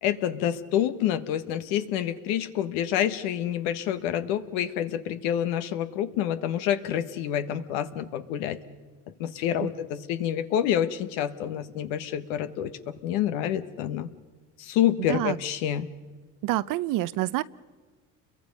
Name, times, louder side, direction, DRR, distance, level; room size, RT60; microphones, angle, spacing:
voice 1, 0.0-8.6 9.2-14.1 14.6-15.9, left 10 dB, 85° left, 10 dB, 1.4 m, -28 dB
voice 2, 16.4-17.4, right 16 dB, 70° right, 17 dB, 0.8 m, -27 dB
30.0 x 22.5 x 5.4 m, 1.3 s
supercardioid pair, 90°, 34 cm